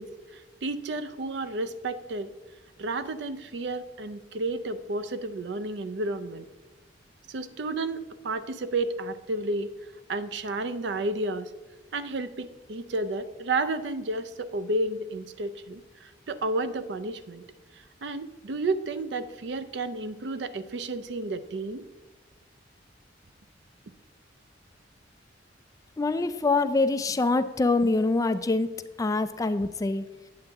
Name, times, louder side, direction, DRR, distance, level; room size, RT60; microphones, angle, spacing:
voice 1, 0.0-2.3 2.8-6.5 7.3-9.7 10.1-11.5 11.9-17.4 18.0-21.8, right 2 dB, 65° right, 13 dB, 0.5 m, -31 dB
voice 2, 26.0-28.7 29.0-30.0, left 3 dB, 20° left, 11 dB, 0.3 m, -25 dB
8.6 x 7.7 x 3.5 m, 1.2 s
head